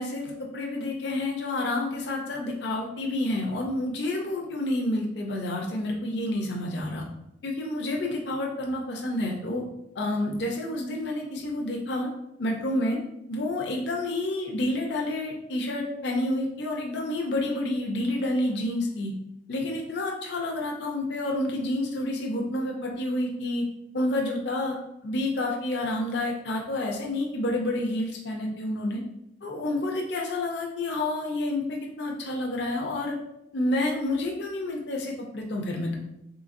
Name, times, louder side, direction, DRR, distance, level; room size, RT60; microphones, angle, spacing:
voice 1, 0.0-7.0 7.4-9.6 9.9-12.1 12.4-13.0 13.3-19.1 19.5-23.6 23.9-24.8 25.0-29.0 29.4-33.1 33.5-35.9, left 1 dB, 60° left, 0 dB, 0.5 m, -29 dB
3.8 x 3.3 x 2.5 m, 0.83 s
head